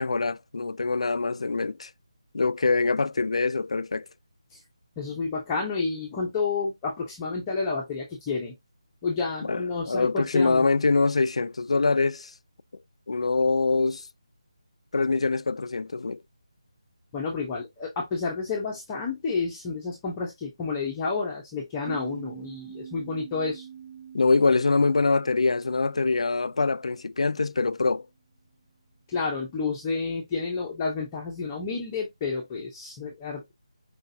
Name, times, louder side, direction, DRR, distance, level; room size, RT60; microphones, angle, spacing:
voice 1, 0.0-1.9 2.3-4.1 9.4-12.3 13.1-14.1 14.9-16.2 24.1-28.1, left 3 dB, 75° left, 0.4 m, -24 dB
voice 2, 5.0-8.5 9.0-10.7 17.1-23.7 29.1-33.5, left 4 dB, 15° left, 0.8 m, -30 dB
sound 1, 21.9-27.2, right 8 dB, 40° right, 1.1 m, -44 dB
4.8 x 3.8 x 2.7 m
figure-of-eight pair, 170°, 3 cm